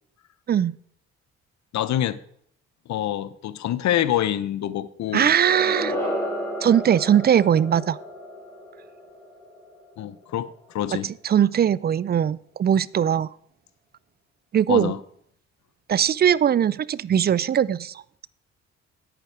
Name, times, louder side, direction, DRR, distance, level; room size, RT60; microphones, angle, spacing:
voice 1, 1.7-2.2 2.9-5.3 10.0-11.1 14.7-15.0, left 11 dB, 65° left, 15 dB, 0.8 m, -26 dB
voice 2, 5.1-6.0 6.6-8.0 11.0-13.3 14.5-14.9 15.9-17.9, right 9 dB, 35° right, 21 dB, 0.4 m, -20 dB
sound 1, 5.3-10.2, equal, 10° left, 4.8 m, -32 dB
9.8 x 8.9 x 4.6 m, 0.66 s
cardioid pair, 90°, 30 cm